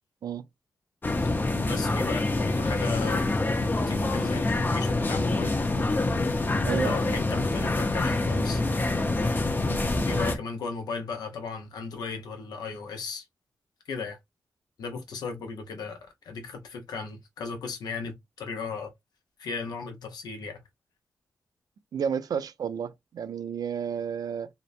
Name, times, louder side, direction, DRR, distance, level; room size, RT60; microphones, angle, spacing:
sound 1, 1.0-10.4, left 2 dB, 30° left, 0.6 m, -26 dB
voice 1, 1.6-3.3 3.7-5.5 6.8-8.6 10.1-13.2 13.9-14.2 14.8-18.9 19.4-20.6, left 5 dB, 85° left, 0.7 m, -36 dB
voice 2, 6.7-7.0 9.6-9.8 21.9-24.5, right 7 dB, 70° right, 0.4 m, -31 dB
2.8 x 2.1 x 2.5 m
cardioid pair, 55°, 7 cm